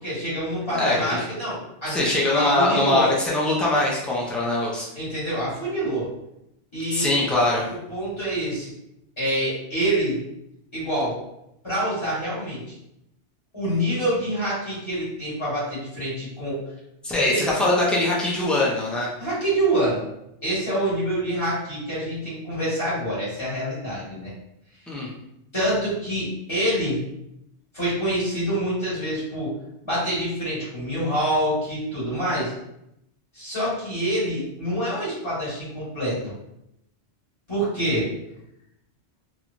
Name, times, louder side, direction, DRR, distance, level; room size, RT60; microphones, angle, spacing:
voice 1, 0.0-2.0 2.3-3.1 4.9-6.1 6.7-7.1 7.7-8.7 9.2-10.2 10.7-11.2 11.6-12.7 13.5-16.6 17.3-17.4 19.2-20.0 20.4-24.3 24.9-25.0 25.5-27.0 27.7-29.5 29.8-32.5 33.3-36.2 37.5-38.1, right 1 dB, 25° left, -10 dB, 1.6 m, -26 dB
voice 2, 0.7-1.2 1.9-4.8 6.9-7.7 17.0-19.1 24.9-25.1, left 2 dB, ahead, -5 dB, 0.3 m, -22 dB
3.0 x 2.2 x 2.6 m, 0.82 s
omnidirectional pair, 1.1 m